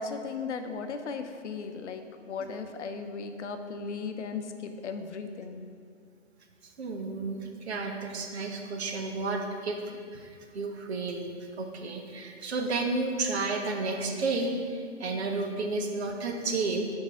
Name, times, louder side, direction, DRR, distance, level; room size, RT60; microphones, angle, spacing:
voice 1, 0.0-5.7, left 5 dB, 65° left, 7 dB, 0.7 m, -36 dB
voice 2, 6.6-11.3 11.6-16.9, right 3 dB, 60° right, 3 dB, 1.0 m, -32 dB
4.8 x 4.7 x 5.8 m, 2.1 s
hypercardioid pair, 155°, 37 cm